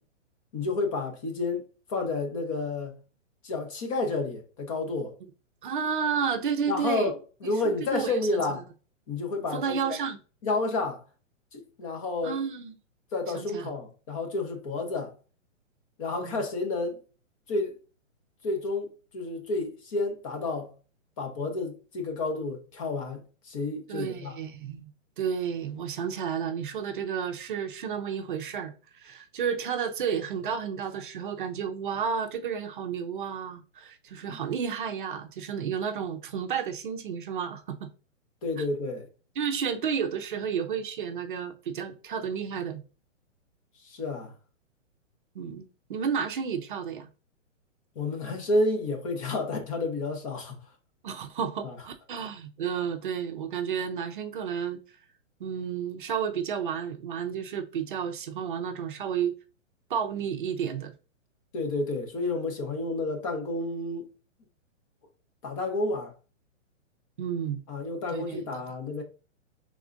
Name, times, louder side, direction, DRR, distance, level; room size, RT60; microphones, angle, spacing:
voice 1, 0.5-2.9 3.4-5.1 6.7-7.1 7.4-8.7 9.1-9.8 10.4-11.0 11.5-12.4 13.1-15.1 16.0-17.0 17.5-17.8 18.4-20.7 21.2-24.4 34.3-34.4 38.4-39.1 43.8-44.3 48.0-50.6 51.6-51.8 61.5-64.0 65.4-66.1 67.7-69.0, left 2 dB, 25° left, 0.9 m, -30 dB
voice 2, 5.6-7.1 7.6-8.6 9.5-10.2 12.2-12.7 13.3-13.7 16.2-16.4 23.9-24.9 25.2-37.9 38.6-38.7 39.4-42.8 45.3-47.1 51.0-54.8 55.4-59.3 59.9-60.9 67.2-67.6 68.1-68.6, right 7 dB, 40° right, 0.6 m, -31 dB
4.8 x 3.5 x 2.5 m
hypercardioid pair, 160°, 38 cm